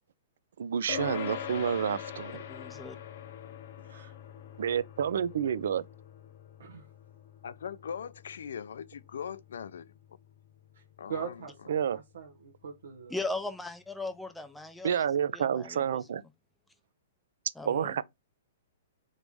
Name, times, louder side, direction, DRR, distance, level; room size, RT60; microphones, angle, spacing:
voice 1, 0.6-2.4 4.6-5.8 11.7-12.0 14.8-16.2 17.7-18.0, right 8 dB, 70° right, 0.4 m, -29 dB
sound 1, 0.9-10.6, left 9 dB, 45° left, 0.7 m, -43 dB
voice 2, 2.5-3.0 13.1-15.1 15.3-16.0 17.6-18.0, left 2 dB, 5° left, 0.4 m, -38 dB
voice 3, 3.8-4.3 6.6-6.9 10.7-10.8 11.1-13.2, right 7 dB, 90° right, 0.9 m, -42 dB
voice 4, 7.4-9.9 11.0-11.4, left 7 dB, 80° left, 0.5 m, -40 dB
4.0 x 3.2 x 3.4 m
hypercardioid pair, 160°, 0 cm